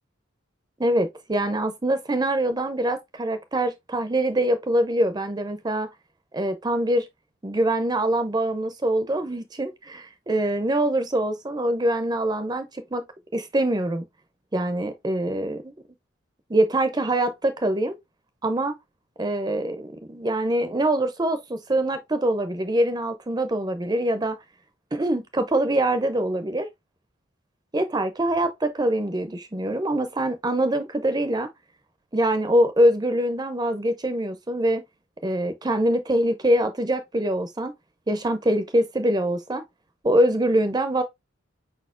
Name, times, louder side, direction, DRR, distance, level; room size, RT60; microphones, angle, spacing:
voice 1, 0.8-5.9 6.3-7.1 7.4-13.0 13.3-14.0 14.5-15.7 16.5-18.0 18.4-18.7 19.2-24.4 24.9-26.7 27.7-31.5 32.1-34.8 35.2-37.7 38.1-39.6 40.0-41.0, right 1 dB, 20° right, 0.5 m, -24 dB
5.0 x 4.2 x 2.4 m
head